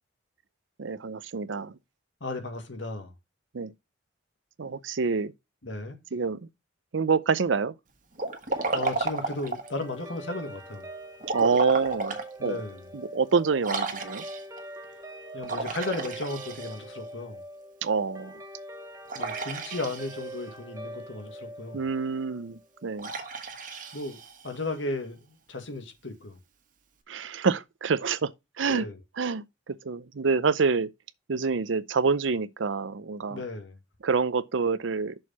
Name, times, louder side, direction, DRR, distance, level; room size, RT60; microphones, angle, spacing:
voice 1, 0.8-1.8 3.5-3.7 4.6-5.3 6.1-6.4 6.9-7.7 11.3-12.6 12.9-14.2 17.8-18.4 21.7-23.1 27.1-28.3 28.6-28.9 29.2-30.9 31.3-33.4 34.0-35.1, right 5 dB, 80° right, 0.6 m, -27 dB
voice 2, 2.2-3.1 5.6-6.0 8.7-10.9 12.4-12.8 15.3-17.4 19.2-21.8 23.9-24.2 24.4-26.4 28.7-29.0 33.3-33.8, left 2 dB, 80° left, 1.9 m, -35 dB
Liquid, 8.1-9.8 11.2-12.3 12.8-12.9 13.6-14.6 15.4-17.0 19.1-20.4 23.0-24.6, right 3 dB, 45° right, 1.4 m, -33 dB
Guitar, 8.5-23.1, right 1 dB, 15° right, 1.0 m, -43 dB
6.4 x 4.6 x 5.6 m
head